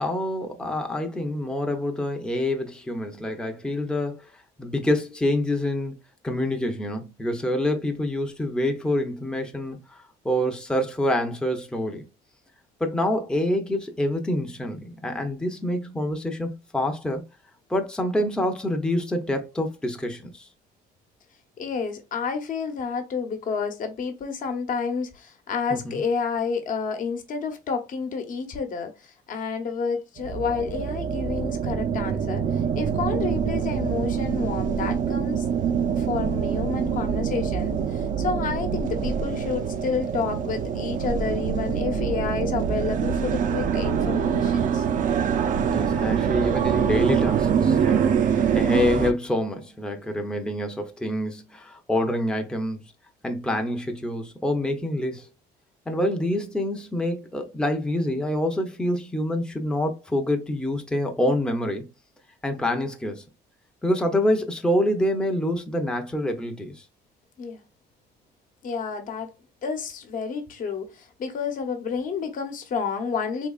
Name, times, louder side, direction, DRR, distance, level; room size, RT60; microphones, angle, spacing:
voice 1, 0.0-4.3 4.6-6.0 6.2-12.0 12.8-17.2 17.7-20.5 25.7-26.0 45.6-52.8 53.2-55.3 55.9-61.9 62.4-63.2 63.8-66.8, left 1 dB, 5° left, 0.7 m, -26 dB
voice 2, 21.6-44.9 67.4-67.6 68.6-69.3 69.6-73.5, left 5 dB, 55° left, 1.0 m, -30 dB
sound 1, 30.2-49.1, right 7 dB, 50° right, 0.5 m, -25 dB
3.8 x 2.9 x 2.4 m
cardioid pair, 110°, 17 cm